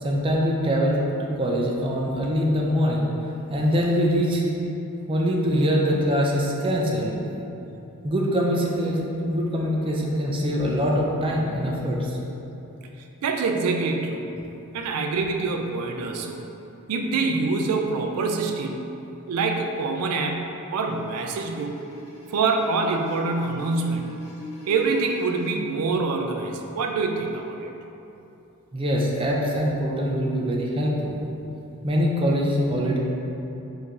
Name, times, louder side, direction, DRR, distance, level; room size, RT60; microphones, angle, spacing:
voice 1, 0.0-3.1 3.5-4.4 5.1-7.2 8.0-9.0 9.3-12.2 28.7-31.2 31.8-33.0, equal, 25° right, -2 dB, 0.4 m, -23 dB
voice 2, 13.2-14.3 14.7-16.4 16.9-18.9 19.3-21.8 22.3-24.2 24.6-27.7, right 3 dB, 90° right, 3 dB, 0.4 m, -25 dB
sound 1, 20.9-25.5 27.2-27.4, left 2 dB, 85° left, 0.9 m, -43 dB
4.5 x 2.6 x 3.6 m, 2.9 s
head